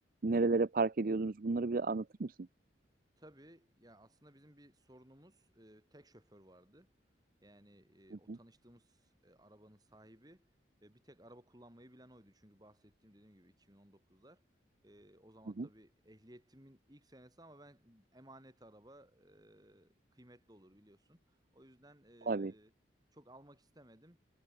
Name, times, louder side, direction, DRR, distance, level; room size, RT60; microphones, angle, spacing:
voice 1, 0.2-2.4 8.3-8.4 15.6-15.7 22.3-22.5, right 3 dB, 45° right, 0.5 m, -32 dB
voice 2, 3.2-6.9 7.4-10.5 10.8-14.4 14.8-22.7 23.1-24.2, right 1 dB, 20° right, 6.3 m, -60 dB
head